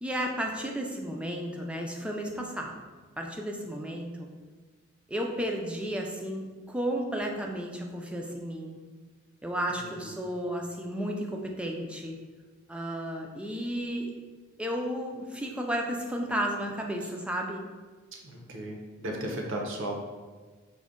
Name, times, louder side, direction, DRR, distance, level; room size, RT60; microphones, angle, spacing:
voice 1, 0.0-2.8 3.2-4.3 5.1-8.8 9.4-12.2 12.7-14.1 14.6-17.6, equal, 5° right, 1 dB, 0.3 m, -33 dB
voice 2, 9.7-10.2 17.0-17.1 18.2-20.0, right 1 dB, 65° right, 0 dB, 0.6 m, -36 dB
5.0 x 2.1 x 3.6 m, 1.4 s
head